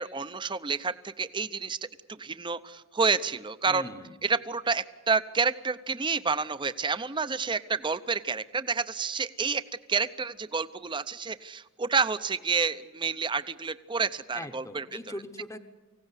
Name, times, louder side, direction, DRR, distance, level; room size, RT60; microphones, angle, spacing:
voice 1, 0.0-1.8 2.1-3.9 4.2-9.6 9.9-14.8, right 5 dB, 20° right, 14 dB, 0.7 m, -29 dB
voice 2, 3.7-4.2 14.3-15.6, left 1 dB, 15° left, 8 dB, 1.0 m, -40 dB
24.0 x 17.0 x 9.8 m, 1.3 s
head